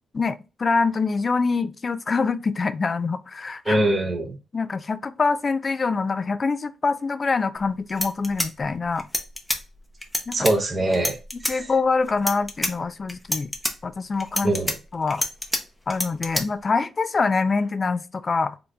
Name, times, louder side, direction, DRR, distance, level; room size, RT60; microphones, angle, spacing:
voice 1, 0.1-3.8 4.5-9.1 10.3-10.4 11.3-13.5 13.8-14.6 14.9-15.3 15.9-18.6, left 4 dB, 35° left, 0.4 m, -25 dB
voice 2, 3.7-4.4 10.3-11.2 11.4-11.7 14.4-14.7, right 1 dB, 35° right, 0.7 m, -23 dB
sound 1, 7.6-7.7 7.9-9.6 10.0-10.5 10.9-11.5 12.1-12.7 13.1-13.7 14.2-15.6 15.9-16.4, left 1 dB, 5° left, 0.8 m, -27 dB
3.9 x 2.2 x 3.3 m
cardioid pair, 95°, 0 cm